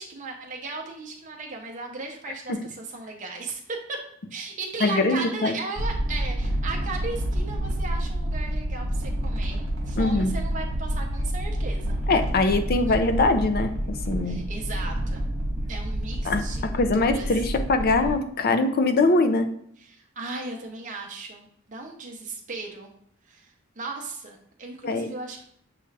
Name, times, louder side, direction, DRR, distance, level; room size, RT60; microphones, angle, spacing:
voice 1, 0.0-4.0 4.3-12.0 12.9-13.0 14.2-15.2 15.7-16.6 16.9-17.3 19.8-21.4 21.7-22.9 23.3-23.5 23.8-25.4, right 3 dB, 40° right, 0 dB, 0.6 m, -36 dB
voice 2, 4.8-5.5 10.0-10.3 12.1-14.4 16.2-19.5 24.8-25.1, left 2 dB, 50° left, 8 dB, 0.5 m, -23 dB
sound 1, 5.8-18.1, right 1 dB, 75° right, 1.1 m, -28 dB
6.6 x 2.3 x 3.2 m, 0.67 s
head